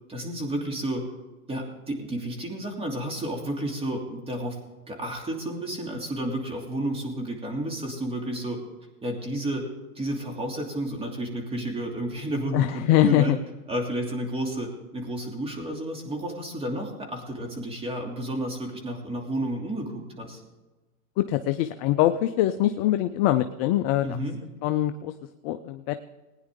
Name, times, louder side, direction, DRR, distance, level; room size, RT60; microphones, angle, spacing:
voice 1, 0.1-1.1 1.5-4.6 4.9-8.6 9.0-9.7 9.9-13.3 13.7-20.4 24.0-24.4, right 1 dB, 15° right, 1 dB, 2.8 m, -31 dB
voice 2, 12.5-13.4 21.2-24.2 24.6-25.1 25.4-25.9, left 13 dB, 30° left, 10 dB, 0.3 m, -23 dB
20.0 x 9.8 x 3.7 m, 1.2 s
hypercardioid pair, 125°, 44 cm